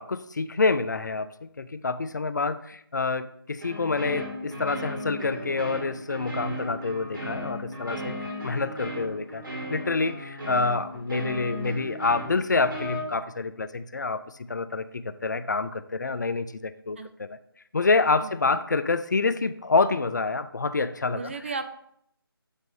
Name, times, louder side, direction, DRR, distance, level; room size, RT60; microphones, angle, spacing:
voice 1, 0.0-8.1 8.4-9.4 9.7-14.2 14.5-17.4 17.7-21.3, left 3 dB, 50° left, 13 dB, 0.4 m, -27 dB
sound 1, 3.6-13.0, equal, 60° right, 2.6 m, -36 dB
voice 2, 18.2-18.6 21.1-21.7, right 4 dB, 30° right, 9 dB, 0.5 m, -35 dB
8.1 x 3.1 x 5.3 m, 0.71 s
figure-of-eight pair, 165°, 13 cm